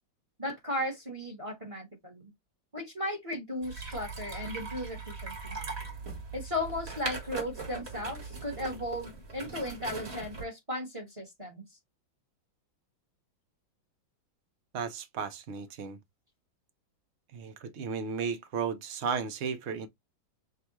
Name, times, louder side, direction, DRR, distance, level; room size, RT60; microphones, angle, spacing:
voice 1, 0.4-2.3 2.7-5.6 6.3-11.6, left 1 dB, 20° right, 1.1 m, -36 dB
sound 1, 3.6-10.4, right 3 dB, 35° right, 1.4 m, -40 dB
voice 2, 14.7-16.0 17.3-19.9, right 6 dB, 60° right, 0.7 m, -34 dB
6.3 x 2.3 x 2.9 m
omnidirectional pair, 2.1 m